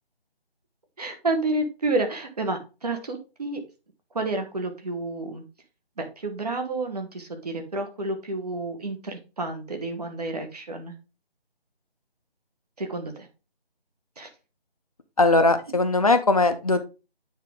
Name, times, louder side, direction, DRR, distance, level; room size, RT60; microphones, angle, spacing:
voice 1, 1.0-3.6 4.1-5.4 6.0-10.9 12.8-13.3 14.2-14.3 15.7-15.8, right 2 dB, 40° right, 4 dB, 1.4 m, -30 dB
voice 2, 15.2-16.8, left 2 dB, 35° left, 8 dB, 0.7 m, -20 dB
8.8 x 3.6 x 3.6 m, 0.30 s
figure-of-eight pair, 160°, 31 cm